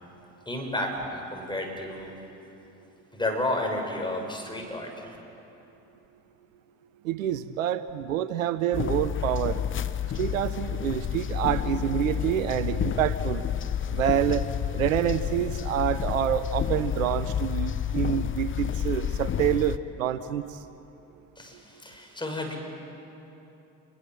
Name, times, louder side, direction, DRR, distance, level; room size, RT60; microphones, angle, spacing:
voice 1, 0.4-2.1 3.1-5.2 21.4-22.6, left 1 dB, 10° left, 1 dB, 6.5 m, -31 dB
voice 2, 7.0-9.6 10.1-13.5 13.9-14.5 14.7-20.4, right 10 dB, 75° right, 14 dB, 0.7 m, -27 dB
sound 1, 8.7-19.8, left 9 dB, 30° left, 0.8 m, -30 dB
26.5 x 22.0 x 7.7 m, 3.0 s
figure-of-eight pair, 50°, 40 cm